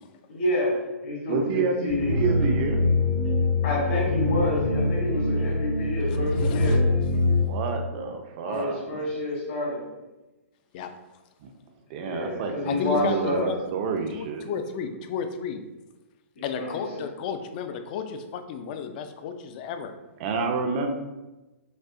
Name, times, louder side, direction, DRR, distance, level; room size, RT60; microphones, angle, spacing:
voice 1, 0.3-2.2 3.6-6.8 8.4-9.8 12.0-13.5 16.3-17.1, left 1 dB, 60° left, -3 dB, 1.5 m, -29 dB
voice 2, 1.3-2.8 7.4-9.0 11.4-11.5 11.9-14.5 20.2-20.9, right 4 dB, 35° right, 5 dB, 0.4 m, -29 dB
sound 1, 1.9-7.4, left 2 dB, 85° left, 0.9 m, -24 dB
voice 3, 6.4-6.8 10.7-10.9 12.6-13.6 14.1-15.6 16.4-19.9, left 7 dB, 35° left, 8 dB, 0.3 m, -33 dB
5.2 x 2.0 x 2.4 m, 1.1 s
hypercardioid pair, 155°, 8 cm